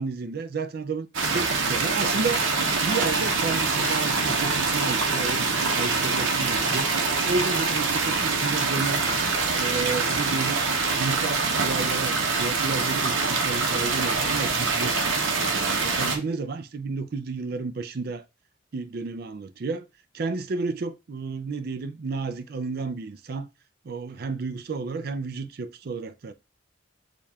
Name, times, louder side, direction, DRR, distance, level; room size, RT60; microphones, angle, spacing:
voice 1, 0.0-2.4 2.8-5.4 5.7-6.9 7.2-9.1 9.6-10.6 10.9-14.9 15.4-18.2 18.7-19.9 20.1-23.5 23.8-26.3, right 4 dB, 50° right, 0.4 m, -31 dB
sound 1, 1.1-16.2, right 4 dB, 80° right, 0.9 m, -25 dB
6.7 x 2.3 x 2.8 m
head